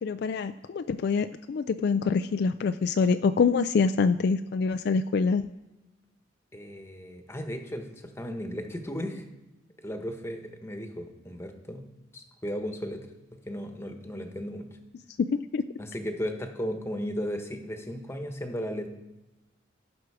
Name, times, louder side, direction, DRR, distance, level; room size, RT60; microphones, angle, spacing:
voice 1, 0.0-5.5 15.5-15.6, left 5 dB, 60° left, 10 dB, 0.3 m, -25 dB
voice 2, 6.5-9.3 9.8-11.9 12.1-13.1 13.5-14.7 15.8-18.9, equal, 15° left, 5 dB, 1.1 m, -35 dB
15.5 x 6.3 x 4.8 m, 1.0 s
head